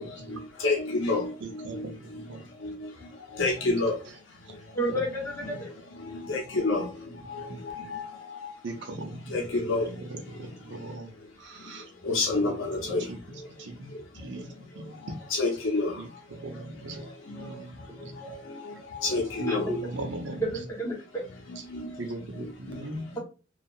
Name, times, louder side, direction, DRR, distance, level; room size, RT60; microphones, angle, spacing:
voice 1, 0.2-4.0 4.4-4.8 6.0-8.5 8.8-8.9 9.3-10.8 11.7-19.7 21.5-23.2, left 3 dB, 90° left, 0.7 m, -32 dB
voice 2, 1.4-2.4 8.6-9.3 10.0-11.1 11.4-11.8 13.1-13.2 13.6-14.5 14.8-15.2 16.0-17.1 17.4-17.8 18.0-18.1 19.4-19.5 19.8-20.4 22.0-23.2, right 2 dB, 65° right, 0.6 m, -38 dB
voice 3, 4.7-5.7 19.5-19.8 20.4-20.9, right 1 dB, 15° left, 0.8 m, -30 dB
2.7 x 2.3 x 2.3 m
head